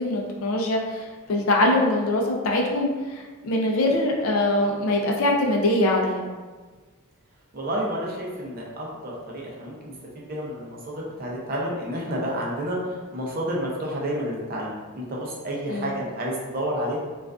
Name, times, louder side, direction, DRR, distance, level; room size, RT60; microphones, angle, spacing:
voice 1, 0.0-6.3 15.7-15.9, left 1 dB, 65° left, 0 dB, 0.4 m, -23 dB
voice 2, 7.5-17.0, equal, 40° right, -3 dB, 0.5 m, -30 dB
2.4 x 2.3 x 2.3 m, 1.4 s
head